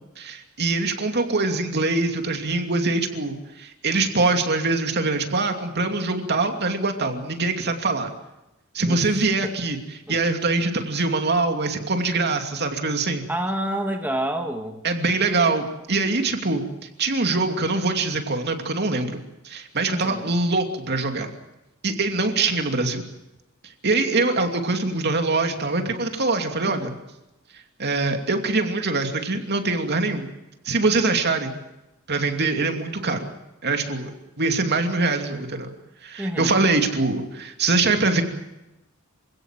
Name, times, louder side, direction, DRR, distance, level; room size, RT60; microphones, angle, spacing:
voice 1, 0.2-8.1 8.7-9.8 10.1-13.2 14.8-16.6 17.0-19.2 19.4-21.3 21.8-23.0 23.8-26.9 27.8-30.3 30.6-31.5 32.1-33.3 33.6-34.1 34.4-35.7 36.0-38.2, right 3 dB, 50° right, 5 dB, 2.7 m, -23 dB
voice 2, 13.3-14.8 19.9-20.3 26.7-26.9 36.2-36.6, right 1 dB, 10° right, 3 dB, 1.9 m, -28 dB
27.0 x 17.0 x 7.6 m, 0.97 s
head